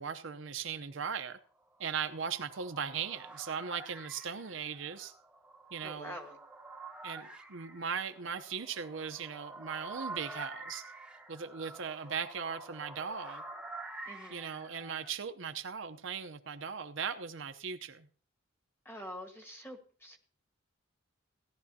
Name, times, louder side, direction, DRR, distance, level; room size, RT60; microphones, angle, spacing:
voice 1, 0.0-1.4 1.8-5.1 5.7-6.2 7.0-10.8 11.3-13.4 14.3-18.1, right 6 dB, 65° right, 0.8 m, -38 dB
sound 1, 1.7-15.1, right 3 dB, 5° right, 0.9 m, -48 dB
voice 2, 5.8-6.4 14.1-14.5 18.8-20.2, left 1 dB, 10° left, 1.4 m, -46 dB
17.0 x 11.5 x 2.8 m
head